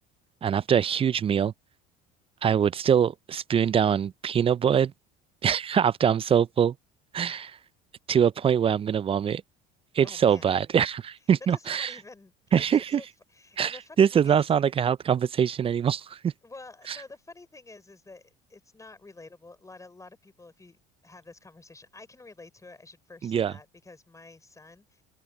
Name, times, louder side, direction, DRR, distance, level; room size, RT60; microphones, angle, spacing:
voice 1, 0.4-1.5 2.4-4.9 5.4-6.7 7.1-7.6 8.1-9.4 9.9-11.9 12.5-13.0 13.6-16.3 16.9-17.0 23.2-23.5, right 8 dB, 25° right, 0.4 m, -23 dB
voice 2, 10.0-10.5 11.5-14.4 16.4-25.0, left 3 dB, 15° left, 6.1 m, -49 dB
supercardioid pair, 90°, 21 cm